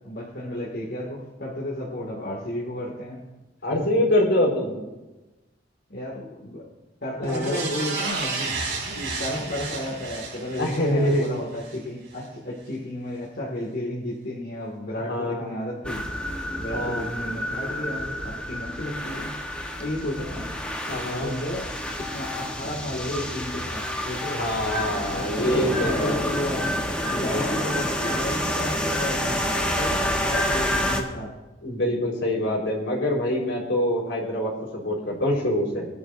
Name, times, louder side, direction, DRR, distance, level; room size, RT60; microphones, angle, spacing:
voice 1, 0.0-3.2 3.7-3.9 5.9-6.7 7.0-8.6 8.9-16.0 16.6-19.4 19.8-20.5 21.0-24.5 25.1-26.7 27.1-31.3, left 1 dB, 60° left, -5 dB, 2.2 m, -33 dB
voice 2, 3.6-4.8 7.2-7.6 10.6-11.4 15.0-15.5 16.7-17.0 20.9-21.3 24.3-26.2 27.2-27.7 31.6-35.9, left 1 dB, 75° left, -3 dB, 4.5 m, -25 dB
sound 1, 7.2-11.8 12.2-12.3, right 4 dB, 85° right, 3.4 m, -32 dB
sound 2, 15.8-31.0, equal, 5° left, 1.2 m, -28 dB
23.0 x 11.0 x 2.7 m, 1.1 s
head